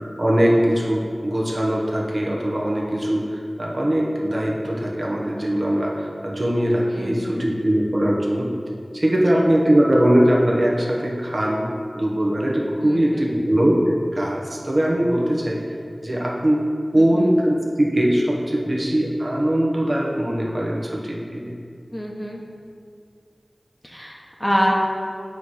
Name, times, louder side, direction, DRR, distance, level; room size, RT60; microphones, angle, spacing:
voice 1, 0.2-8.5 8.9-15.6 16.0-21.5, right 1 dB, 50° right, -3 dB, 1.1 m, -21 dB
voice 2, 6.9-7.5 9.3-9.4 12.8-13.3 16.9-17.3 21.9-22.4 23.8-24.7, equal, 5° left, -2 dB, 1.0 m, -26 dB
8.5 x 3.2 x 5.7 m, 2.3 s
wide cardioid pair, 60°, 0 cm